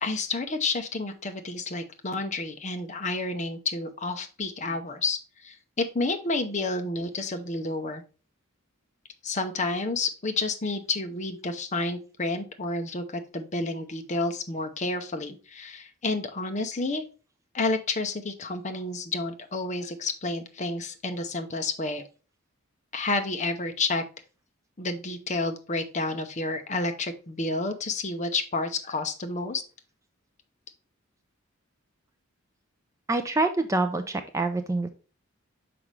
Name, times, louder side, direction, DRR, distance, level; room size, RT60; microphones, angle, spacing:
voice 1, 0.0-8.0 9.2-17.0 17.5-22.1 22.9-24.0 24.8-29.6, left 3 dB, 35° left, 7 dB, 0.7 m, -30 dB
voice 2, 33.1-34.9, right 2 dB, 15° right, 7 dB, 0.4 m, -26 dB
5.9 x 5.0 x 3.2 m, 0.35 s
head